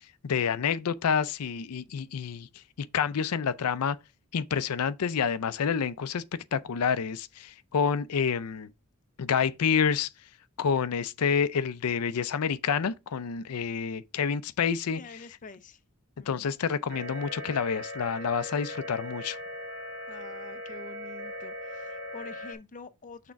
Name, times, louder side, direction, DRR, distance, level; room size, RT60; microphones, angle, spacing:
voice 1, 0.2-2.5 2.9-4.0 4.3-6.2 6.5-8.7 9.2-10.1 10.6-15.0 16.3-19.4, left 6 dB, 90° left, 0.5 m, -28 dB
voice 2, 14.9-15.8 16.2-16.5 20.1-23.3, left 3 dB, 35° left, 0.5 m, -47 dB
sound 1, 16.9-22.6, left 1 dB, 60° right, 1.6 m, -39 dB
6.3 x 3.6 x 5.6 m
head